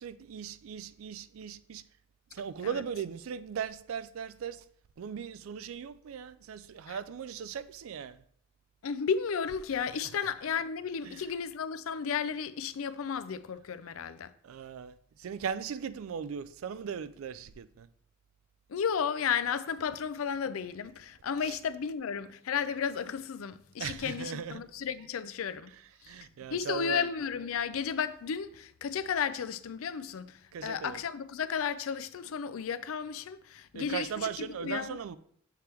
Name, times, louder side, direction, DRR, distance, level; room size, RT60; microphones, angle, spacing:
voice 1, 0.0-1.8 2.3-4.6 5.0-8.2 14.4-14.9 15.2-17.9 23.8-24.6 26.1-27.0 30.5-31.0 33.7-35.2, right 7 dB, 75° right, 0.4 m, -38 dB
voice 2, 8.8-14.3 18.7-25.7 26.5-35.0, left 7 dB, 75° left, 0.4 m, -33 dB
6.8 x 3.4 x 4.4 m
head